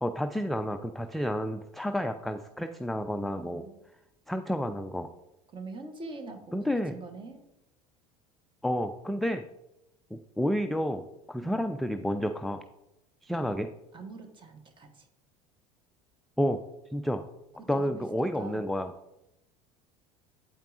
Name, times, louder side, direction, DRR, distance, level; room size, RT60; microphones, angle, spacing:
voice 1, 0.0-3.6 4.3-5.1 6.5-7.0 8.6-9.4 10.1-12.6 13.2-13.7 16.4-16.6 16.9-17.2 17.7-18.9, equal, ahead, 7 dB, 0.4 m, -30 dB
voice 2, 3.3-3.8 5.5-7.4 11.4-11.7 13.9-15.1 17.6-18.7, right 3 dB, 25° right, 7 dB, 1.3 m, -44 dB
8.7 x 8.5 x 2.5 m, 0.89 s
figure-of-eight pair, 70°, 19 cm